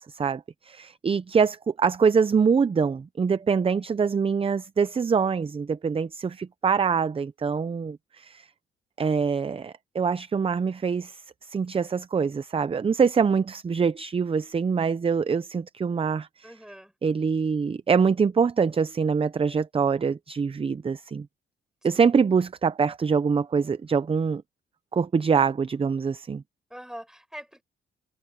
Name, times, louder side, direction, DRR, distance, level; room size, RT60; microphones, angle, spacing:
voice 1, 0.0-8.5 9.0-11.2 11.5-16.5 17.0-21.3 21.8-24.4 24.9-26.4, right 5 dB, 30° right, 0.7 m, -24 dB
voice 2, 16.4-16.9 26.7-27.6, equal, 5° right, 7.8 m, -42 dB
cardioid pair, 90°, 20 cm